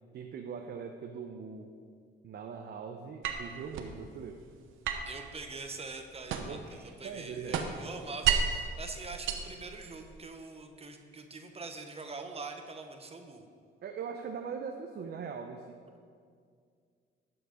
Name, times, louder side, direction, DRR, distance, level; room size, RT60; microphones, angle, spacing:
voice 1, 0.1-1.7 2.2-4.4 6.3-7.6 13.8-15.8, right 6 dB, 55° right, 4 dB, 0.7 m, -41 dB
sound 1, 3.2-4.0 4.8-6.7 7.0-8.7 9.1-10.2, right 7 dB, 85° right, 0.8 m, -32 dB
voice 2, 5.1-13.5, right 3 dB, 30° right, 5 dB, 0.9 m, -44 dB
11.5 x 6.0 x 5.1 m, 2.2 s
cardioid pair, 90°, 20 cm